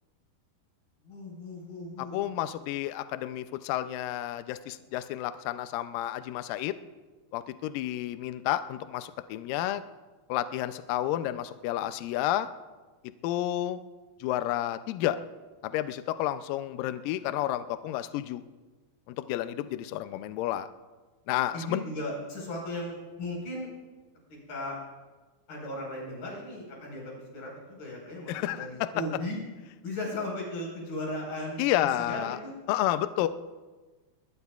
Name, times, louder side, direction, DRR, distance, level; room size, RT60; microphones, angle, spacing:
voice 1, 1.0-2.2 21.5-23.7 24.3-24.8 25.5-29.4 29.8-32.5, left 1 dB, 60° left, -1 dB, 6.3 m, -37 dB
voice 2, 2.0-6.8 7.3-9.8 10.3-12.5 13.2-13.8 14.2-15.2 15.6-18.4 19.1-20.7 21.3-21.8 28.3-28.9 31.6-32.4 32.7-33.3, left 13 dB, 85° left, 11 dB, 2.0 m, -30 dB
22.0 x 20.0 x 2.4 m, 1.3 s
omnidirectional pair, 4.6 m